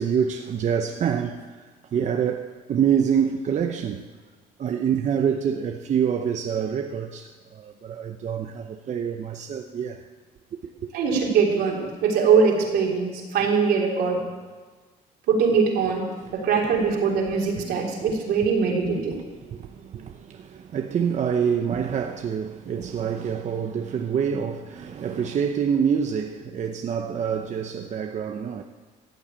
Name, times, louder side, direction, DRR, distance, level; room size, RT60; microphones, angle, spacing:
voice 1, 0.0-1.5 1.9-4.0 4.6-10.0 16.2-16.3 17.6-18.2 19.1-28.6, right 7 dB, 45° right, 0.8 m, -26 dB
voice 2, 10.9-14.2 15.3-19.2, right 5 dB, 75° right, 3.4 m, -22 dB
14.5 x 7.9 x 8.8 m
cardioid pair, 110°, 17 cm